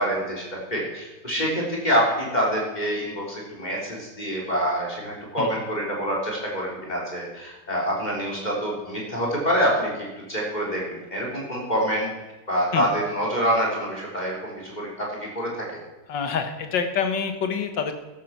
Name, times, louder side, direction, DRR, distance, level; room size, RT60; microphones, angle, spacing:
voice 1, 0.0-12.1 12.5-15.7, equal, 25° left, -3 dB, 4.0 m, -26 dB
voice 2, 16.1-17.9, left 6 dB, 85° left, 7 dB, 2.0 m, -26 dB
13.0 x 12.0 x 6.0 m, 1.1 s
omnidirectional pair, 1.9 m